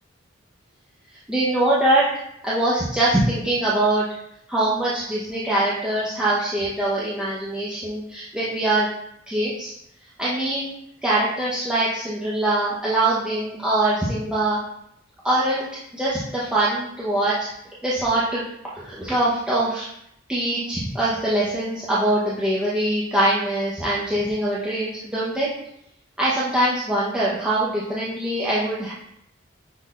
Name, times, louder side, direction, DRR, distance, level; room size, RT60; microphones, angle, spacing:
voice 1, 1.1-2.1 2.4-4.0 4.5-8.9 9.3-9.7 10.2-10.7 11.0-14.6 15.2-17.5 17.8-18.4 18.7-19.9 20.3-25.5 26.2-28.9, right 1 dB, 5° right, -9 dB, 0.9 m, -23 dB
9.7 x 4.0 x 2.5 m, 0.75 s
head